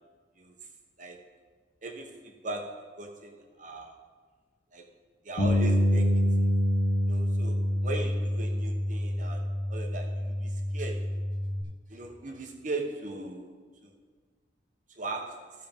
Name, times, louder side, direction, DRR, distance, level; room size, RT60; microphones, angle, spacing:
voice 1, 1.8-4.0 4.7-4.8 5.2-6.5 7.0-11.1 11.9-13.5 13.8-13.9 14.9-15.5, right 2 dB, 40° right, 3 dB, 1.1 m, -39 dB
Bass guitar, 5.4-11.6, equal, 55° left, 1.3 m, -27 dB
15.0 x 6.6 x 3.6 m, 1.5 s
head